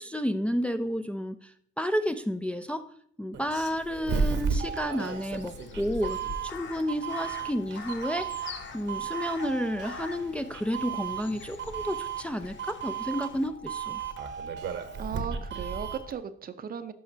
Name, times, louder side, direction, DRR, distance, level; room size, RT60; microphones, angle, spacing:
voice 1, 0.0-2.9 3.2-14.0, equal, 5° left, 7 dB, 0.4 m, -31 dB
Doorbell, 3.3-16.1, right 6 dB, 65° right, 1.0 m, -34 dB
Crow, 4.6-13.5, left 5 dB, 70° left, 0.9 m, -45 dB
sound 1, 6.4-16.2, left 4 dB, 35° left, 0.7 m, -51 dB
voice 2, 15.0-16.9, right 7 dB, 50° right, 10 dB, 0.6 m, -36 dB
11.0 x 5.7 x 2.7 m, 0.62 s
cardioid pair, 90°, 20 cm